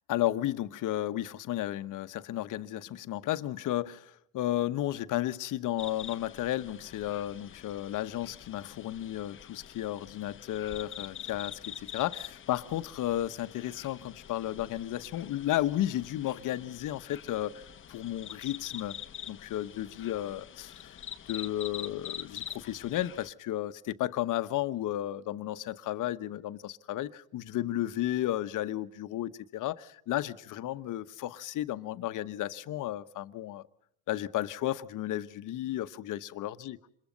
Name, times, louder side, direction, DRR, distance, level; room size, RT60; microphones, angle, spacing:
voice 1, 0.1-17.6 17.9-19.0 19.3-21.0 21.3-33.7 34.1-36.8, left 13 dB, 50° left, 1.2 m, -33 dB
sound 1, 5.8-23.3, left 9 dB, 30° left, 1.0 m, -46 dB
27.5 x 22.0 x 5.3 m
supercardioid pair, 100°, 39 cm